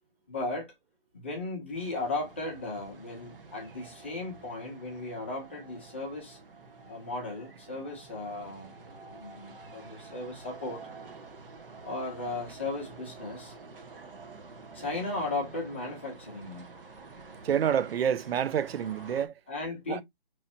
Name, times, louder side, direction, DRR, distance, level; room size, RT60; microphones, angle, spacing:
voice 1, 0.3-0.7 1.1-6.4 6.9-8.7 9.1-10.8 11.8-13.5 14.7-16.7 19.5-20.0, left 2 dB, 10° left, 0.6 m, -36 dB
sound 1, 1.7-19.3, right 4 dB, 70° right, 1.3 m, -49 dB
voice 2, 17.4-19.3 19.9-20.0, right 8 dB, 90° right, 0.5 m, -28 dB
5.1 x 3.1 x 2.8 m
hypercardioid pair, 170°, 29 cm